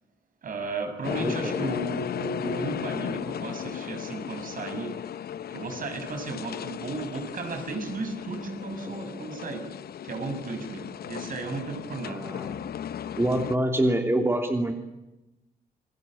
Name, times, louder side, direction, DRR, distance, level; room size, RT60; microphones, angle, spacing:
voice 1, 0.4-4.9 5.5-9.6 10.0-12.3, right 3 dB, 60° right, 6 dB, 6.2 m, -34 dB
sound 1, 1.0-13.6, left 9 dB, 90° left, 0.9 m, -36 dB
voice 2, 1.1-1.7 12.1-12.6 13.2-14.7, right 1 dB, 15° right, 4 dB, 3.0 m, -26 dB
28.0 x 21.0 x 8.8 m, 0.96 s
wide cardioid pair, 130°, 16 cm